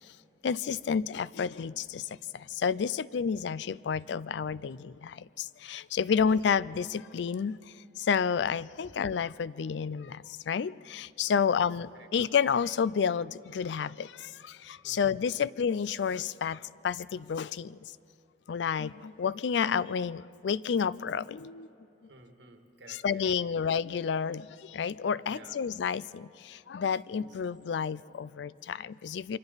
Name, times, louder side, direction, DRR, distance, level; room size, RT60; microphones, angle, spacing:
voice 1, 0.4-7.6 8.0-17.8 18.5-21.7 23.0-29.4, left 6 dB, 70° left, 19 dB, 0.4 m, -30 dB
voice 2, 11.3-12.1 14.8-15.4 22.0-23.6 25.2-25.6 27.1-27.4, right 2 dB, 75° right, 5 dB, 1.7 m, -55 dB
28.5 x 24.0 x 4.0 m, 2.8 s
head